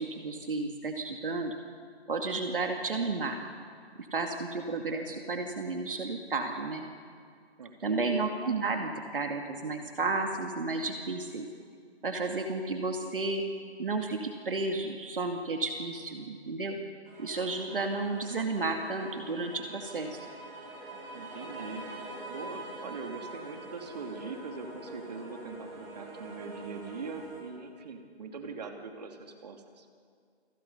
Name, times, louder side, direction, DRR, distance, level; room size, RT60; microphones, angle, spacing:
voice 1, 0.0-1.5 2.1-3.4 4.0-6.8 7.8-11.5 12.0-13.4 13.8-16.8 17.2-20.3, right 3 dB, 55° right, 3 dB, 2.4 m, -32 dB
voice 2, 7.6-8.2 21.1-21.9 22.3-29.9, right 4 dB, 40° right, 4 dB, 2.7 m, -42 dB
sound 1, 17.1-27.4, right 2 dB, 15° right, 3.8 m, -45 dB
29.5 x 25.0 x 5.6 m, 2.1 s
figure-of-eight pair, 155°, 33 cm